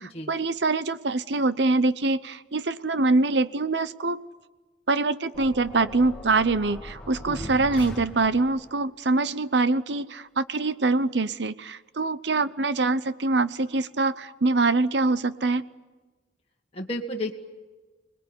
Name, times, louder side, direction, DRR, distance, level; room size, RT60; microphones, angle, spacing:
voice 1, 0.0-4.2 4.9-15.6, right 3 dB, 75° right, 15 dB, 0.9 m, -24 dB
sound 1, 5.3-8.7, left 1 dB, 5° left, 2.9 m, -40 dB
voice 2, 7.3-7.6 16.7-17.3, left 1 dB, 35° left, 0 dB, 1.7 m, -32 dB
26.0 x 20.5 x 9.7 m, 1.2 s
head